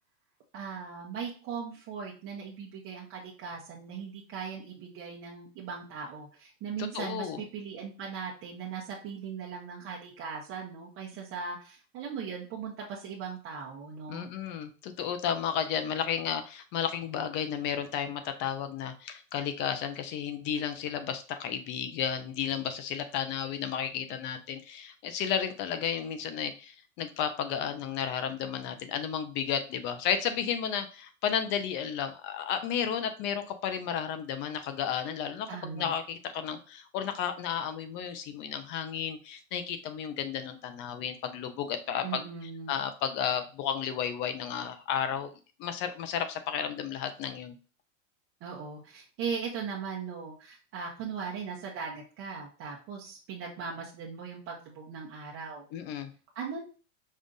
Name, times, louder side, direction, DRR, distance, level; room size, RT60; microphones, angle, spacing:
voice 1, 0.5-14.3 35.5-35.9 42.0-42.7 48.4-55.7 56.3-56.6, right 6 dB, 35° right, -3 dB, 1.0 m, -39 dB
voice 2, 6.9-7.4 14.1-42.2 42.7-45.3 45.6-47.5 55.7-56.1, left 8 dB, 30° left, 9 dB, 0.5 m, -33 dB
5.4 x 2.4 x 3.9 m, 0.36 s
supercardioid pair, 140°, 41 cm